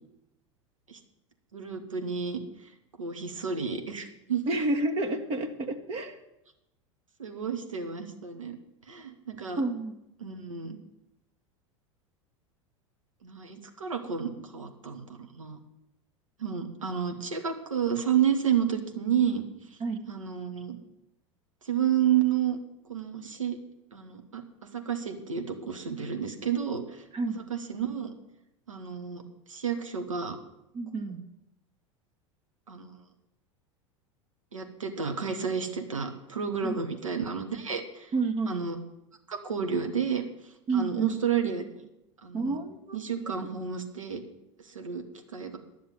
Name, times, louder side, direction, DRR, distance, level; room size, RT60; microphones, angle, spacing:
voice 1, 1.5-2.4 3.0-4.4 7.2-8.6 8.9-9.6 10.2-10.8 13.2-15.6 16.4-19.4 20.1-20.8 21.6-22.6 22.9-23.6 23.9-24.4 24.7-27.0 27.3-28.1 28.7-29.2 29.5-30.4 32.7-32.9 34.5-38.1 38.5-38.8 39.3-40.2 40.7-41.9 42.2-42.6 42.9-44.2 44.6-45.0 45.3-45.6, right 8 dB, 80° right, 5 dB, 1.6 m, -30 dB
voice 2, 4.5-6.2 9.6-10.0 19.8-20.1 27.1-27.4 30.7-31.2 36.6-36.8 38.1-38.6 40.7-41.2 42.3-43.0 43.4-43.5, right 3 dB, 40° right, 6 dB, 1.7 m, -30 dB
11.0 x 6.9 x 9.4 m, 0.88 s
figure-of-eight pair, 85°, 16 cm